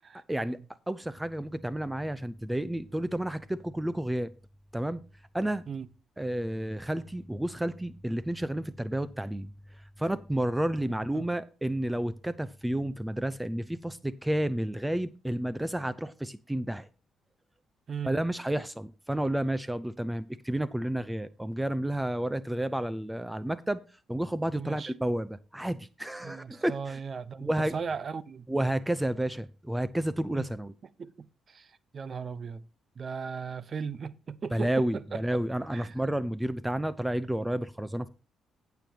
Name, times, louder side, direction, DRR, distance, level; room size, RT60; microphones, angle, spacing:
voice 1, 0.9-4.3 4.7-5.0 5.3-5.6 6.2-9.5 10.0-16.9 18.0-23.8 24.1-27.0 27.4-27.7 28.5-30.7 34.5-38.1, right 1 dB, 10° right, 0.6 m, -31 dB
voice 2, 24.5-24.9 26.2-28.5 30.3-30.4 31.0-31.1 31.5-32.6 33.0-35.2 35.7-35.9, right 6 dB, 45° right, 0.8 m, -37 dB
15.0 x 7.0 x 2.9 m
cardioid pair, 90°, 0 cm